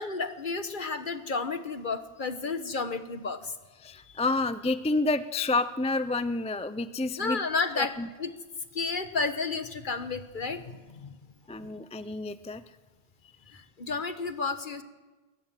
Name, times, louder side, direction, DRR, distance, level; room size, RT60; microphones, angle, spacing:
voice 1, 0.0-3.5 3.9-4.2 7.2-7.9 8.2-8.3 8.7-11.1 13.5-14.8, left 4 dB, 50° left, 9 dB, 1.4 m, -32 dB
voice 2, 3.8-7.4 7.8-8.1 11.5-12.6, left 2 dB, 10° left, 12 dB, 0.5 m, -29 dB
21.5 x 20.0 x 7.6 m, 1.2 s
omnidirectional pair, 1.1 m